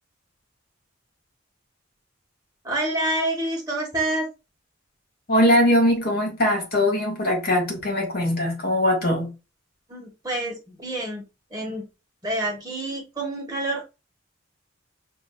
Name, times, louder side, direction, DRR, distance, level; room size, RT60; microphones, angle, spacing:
voice 1, 2.6-4.3 9.9-11.2 11.5-11.8 12.2-13.8, right 1 dB, 20° right, 1.3 m, -27 dB
voice 2, 5.3-9.3, left 1 dB, 50° left, 1.7 m, -21 dB
6.1 x 2.7 x 2.3 m
head